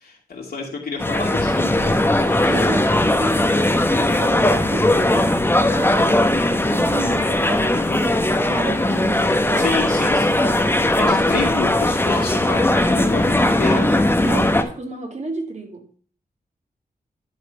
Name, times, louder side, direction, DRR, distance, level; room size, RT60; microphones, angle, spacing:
voice 1, 0.0-1.9 2.4-2.5 7.7-8.1 9.6-10.4 11.0-13.8, left 4 dB, 75° left, 2.5 m, -28 dB
sound 1, 1.0-14.6, left 1 dB, 15° left, 0.8 m, -19 dB
voice 2, 2.3-8.2 8.5-10.1 11.0-11.7 14.2-15.8, right 3 dB, 45° right, 1.8 m, -32 dB
11.5 x 4.1 x 5.1 m
wide cardioid pair, 100°, 16 cm